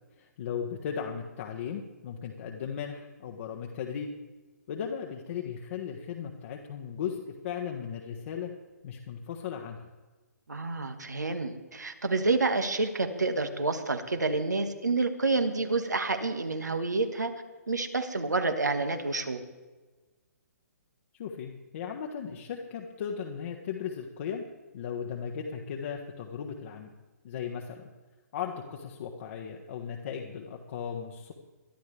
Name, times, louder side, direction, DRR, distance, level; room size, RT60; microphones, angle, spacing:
voice 1, 0.2-4.1 4.7-8.5 8.8-9.8 21.1-24.4 24.7-26.9 27.2-27.8 28.3-31.3, left 7 dB, 45° left, 1 dB, 1.4 m, -36 dB
voice 2, 10.5-17.3 17.7-19.4, right 3 dB, 85° right, 6 dB, 1.8 m, -28 dB
22.0 x 12.0 x 3.4 m, 1.2 s
figure-of-eight pair, 130°, 9 cm